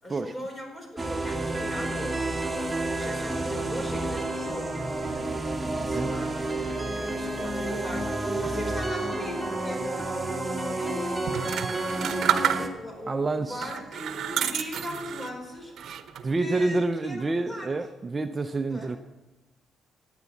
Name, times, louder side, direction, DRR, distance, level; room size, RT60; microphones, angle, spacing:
voice 1, 0.0-4.9 5.6-9.9 10.7-11.5 11.9-15.7 16.4-17.2 17.5-17.8 18.7-19.0, equal, 25° left, 2 dB, 4.9 m, -39 dB
sound 1, 1.0-12.7, right 2 dB, 10° right, 1.8 m, -30 dB
sound 2, 11.3-13.0 13.6-15.4 15.8-16.4, right 9 dB, 70° right, 0.9 m, -30 dB
voice 2, 13.1-13.7 16.2-19.0, right 2 dB, 30° right, 8 dB, 0.7 m, -28 dB
14.5 x 9.2 x 7.2 m, 1.1 s
cardioid pair, 90°, 0 cm